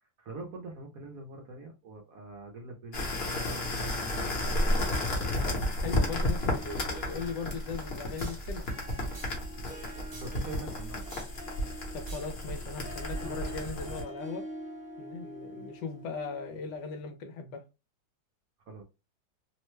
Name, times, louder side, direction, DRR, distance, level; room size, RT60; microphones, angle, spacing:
voice 1, 0.0-3.1 3.3-4.8 10.0-11.2 18.7-18.8, right 3 dB, 65° right, 0.9 m, -44 dB
sound 1, 2.9-14.0, left 1 dB, 45° left, 0.9 m, -32 dB
voice 2, 5.8-8.7 11.9-14.5 15.0-17.7, left 5 dB, 75° left, 1.1 m, -38 dB
Harp, 5.9-17.0, equal, 10° right, 0.5 m, -46 dB
sound 2, 6.7-14.3, right 1 dB, 45° right, 0.7 m, -53 dB
3.0 x 2.1 x 3.0 m
omnidirectional pair, 2.0 m